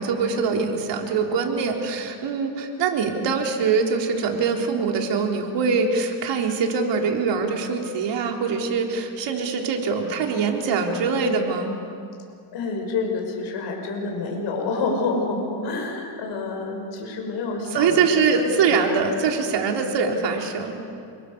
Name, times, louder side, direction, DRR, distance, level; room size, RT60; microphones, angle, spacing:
voice 1, 0.0-11.7 17.7-20.8, right 5 dB, 65° right, 1 dB, 3.9 m, -23 dB
voice 2, 12.5-18.2 18.7-18.8, left 3 dB, 65° left, 1 dB, 5.7 m, -28 dB
28.0 x 24.0 x 7.0 m, 2.5 s
cardioid pair, 100°, 46 cm